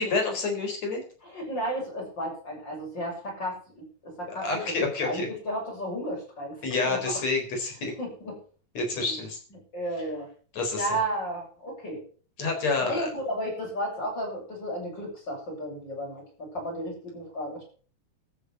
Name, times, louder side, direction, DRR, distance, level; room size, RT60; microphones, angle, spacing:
voice 1, 0.0-1.0 4.3-5.3 6.6-7.9 8.8-9.4 10.5-11.0 12.4-13.1, left 3 dB, 60° left, 3 dB, 5.4 m, -28 dB
voice 2, 1.2-7.2 8.0-8.4 9.1-9.2 9.5-10.3 10.7-12.0 12.8-17.7, equal, 35° left, -2 dB, 8.0 m, -33 dB
14.0 x 8.9 x 7.1 m, 0.41 s
omnidirectional pair, 3.4 m